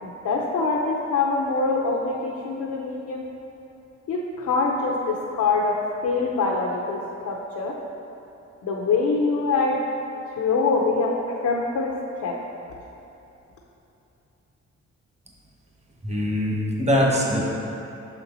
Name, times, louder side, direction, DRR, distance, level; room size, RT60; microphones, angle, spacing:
voice 1, 0.0-3.2 4.1-7.8 8.6-9.8 10.2-11.2 11.4-11.9 12.2-12.4, left 4 dB, 75° left, -2 dB, 0.7 m, -24 dB
voice 2, 16.0-17.5, equal, 20° right, -3 dB, 1.2 m, -22 dB
6.4 x 4.4 x 4.0 m, 2.9 s
cardioid pair, 70°, 29 cm